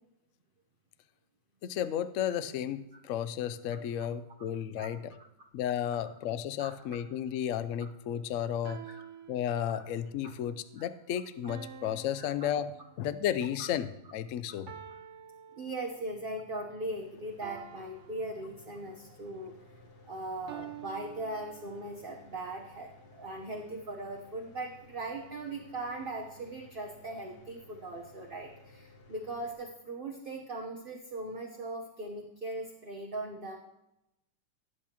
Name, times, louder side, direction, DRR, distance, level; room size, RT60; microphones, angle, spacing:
voice 1, 1.6-5.1 5.5-8.9 9.3-14.7, left 10 dB, 85° left, 12 dB, 0.7 m, -33 dB
sound 1, 6.6-7.1 8.6-10.1 11.5-13.3 14.7-16.3 17.4-19.0 20.5-22.1, right 9 dB, 65° right, 0.7 m, -49 dB
voice 2, 8.4-8.7 9.7-9.8 12.2-12.3 13.6-13.7 15.6-19.6 20.1-33.6, right 2 dB, 35° right, -1 dB, 1.0 m, -39 dB
Mechanical fan, 16.9-29.5, left 2 dB, 60° left, 2.1 m, -57 dB
18.0 x 8.4 x 2.9 m, 0.88 s
omnidirectional pair, 2.0 m